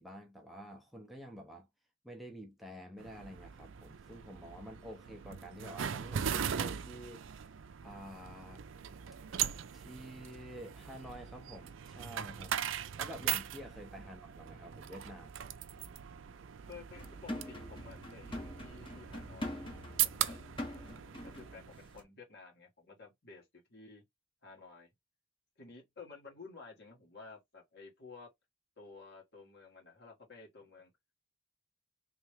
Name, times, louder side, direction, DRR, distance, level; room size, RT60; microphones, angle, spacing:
voice 1, 0.0-1.7 2.0-7.2 7.8-8.6 9.7-12.5 13.0-15.3, equal, ahead, 0.6 m, -49 dB
sound 1, 3.0-22.0, right 9 dB, 65° right, 0.4 m, -40 dB
voice 2, 16.6-19.6 20.0-20.4 21.2-24.0 24.4-24.9 25.6-28.3 28.8-30.9, left 4 dB, 55° left, 1.8 m, -53 dB
sound 2, 16.9-21.6 21.9-22.0, left 1 dB, 25° left, 0.9 m, -44 dB
3.3 x 3.2 x 3.3 m
head